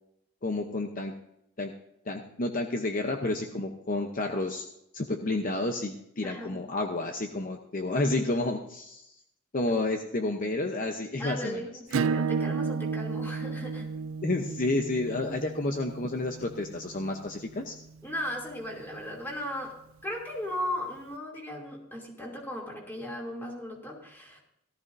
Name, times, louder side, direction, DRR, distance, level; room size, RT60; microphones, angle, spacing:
voice 1, 0.4-1.1 1.6-1.7 2.1-4.6 4.9-9.1 9.5-11.6 12.0-12.1 14.2-17.7, left 2 dB, 40° left, 4 dB, 0.8 m, -30 dB
voice 2, 6.2-6.6 9.8-9.9 11.2-13.9 15.1-15.4 18.0-19.7 20.0-24.4, equal, 10° left, -1 dB, 2.8 m, -37 dB
Acoustic guitar / Strum, 11.9-17.2, right 5 dB, 85° right, 0.4 m, -32 dB
17.5 x 13.5 x 2.7 m, 0.80 s
head